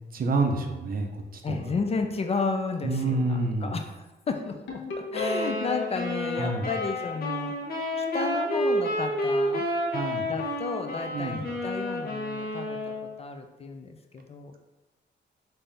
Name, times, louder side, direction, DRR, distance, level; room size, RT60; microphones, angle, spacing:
voice 1, 0.1-1.7 2.8-3.8 6.4-6.7 9.9-10.3 11.1-11.5, right 2 dB, 50° right, 4 dB, 0.6 m, -28 dB
voice 2, 1.4-4.8 5.1-9.7 10.2-14.5, left 4 dB, 35° left, 5 dB, 0.4 m, -33 dB
Ringtone, 4.7-5.8, left 1 dB, 90° left, 1.0 m, -33 dB
sound 1, 5.1-13.1, equal, 55° left, 0.9 m, -30 dB
5.4 x 2.7 x 3.4 m, 1.1 s
wide cardioid pair, 150°, 19 cm